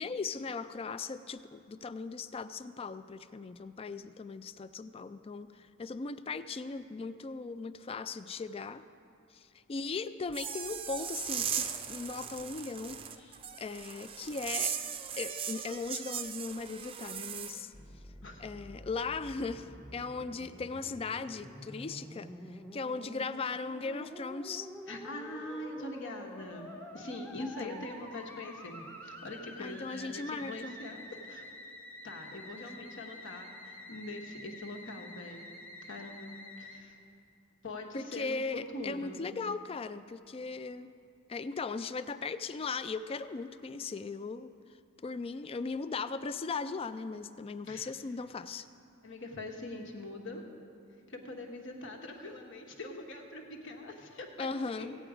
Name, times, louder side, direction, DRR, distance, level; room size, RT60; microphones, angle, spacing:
voice 1, 0.0-8.8 9.3-13.0 13.6-14.7 15.2-17.7 18.4-24.7 27.4-27.9 29.6-30.7 32.6-32.7 37.9-40.9 41.3-44.5 45.0-48.7 54.4-54.9, left 4 dB, 30° left, 13 dB, 0.3 m, -38 dB
sound 1, 10.3-17.6, right 7 dB, 25° right, 0.5 m, -38 dB
Musical instrument, 17.7-36.8, equal, 10° left, 0.8 m, -48 dB
voice 2, 24.9-31.5 32.0-35.5 35.8-37.0 37.6-39.2 47.6-47.9 49.0-50.5 51.1-54.5 54.8-54.9, left 2 dB, 65° left, 2 dB, 1.3 m, -43 dB
15.5 x 9.2 x 5.0 m, 2.6 s
head